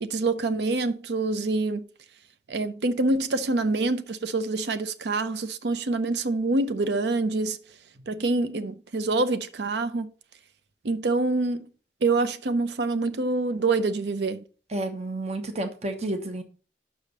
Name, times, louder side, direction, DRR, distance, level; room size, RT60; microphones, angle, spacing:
voice 1, 0.0-1.8 2.5-7.6 8.1-10.1 10.8-11.7 12.0-14.4, right 3 dB, 70° right, 0.6 m, -26 dB
voice 2, 14.7-16.4, right 2 dB, 40° right, 1.0 m, -30 dB
6.2 x 5.0 x 6.5 m
head